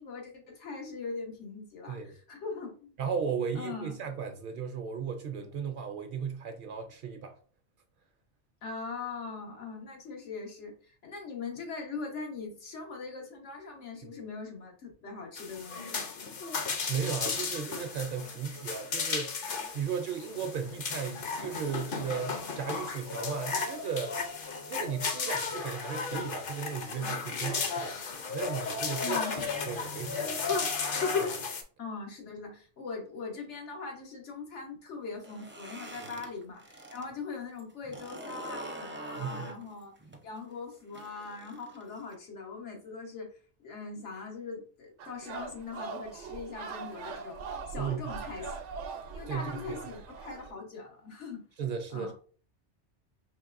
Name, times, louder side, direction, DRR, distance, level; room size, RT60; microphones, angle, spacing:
voice 1, 0.0-2.9 3.5-4.0 8.6-16.4 29.0-29.4 31.8-39.9 40.2-48.5 49.1-51.4 51.9-52.1, left 4 dB, 90° left, 1.4 m, -41 dB
voice 2, 3.0-7.4 16.9-24.2 24.7-30.6 31.2-31.5 39.2-39.5 47.8-48.2 49.3-49.8 51.6-52.1, right 6 dB, 60° right, 0.6 m, -36 dB
sound 1, 15.4-31.6, left 5 dB, 55° left, 0.8 m, -34 dB
sound 2, 35.1-37.1 37.4-42.1, right 1 dB, 15° right, 0.4 m, -44 dB
sound 3, 45.0-50.5, right 5 dB, 90° right, 0.9 m, -41 dB
4.5 x 3.0 x 2.4 m
omnidirectional pair, 1.2 m